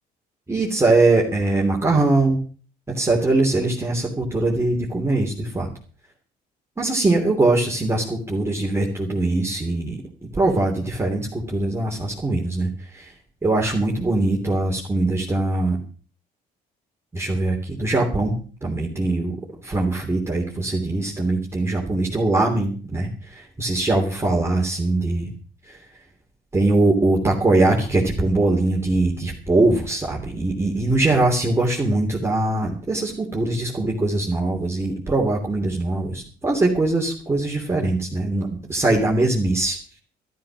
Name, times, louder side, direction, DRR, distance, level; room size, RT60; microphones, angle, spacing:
voice 1, 0.5-2.4 2.9-5.7 6.8-10.0 10.3-13.1 13.4-15.8 17.1-18.3 18.6-19.3 19.6-25.3 25.7-25.8 26.5-39.8, right 2 dB, 15° right, -1 dB, 3.1 m, -21 dB
13.0 x 12.5 x 6.2 m, 0.40 s
cardioid pair, 110°, 17 cm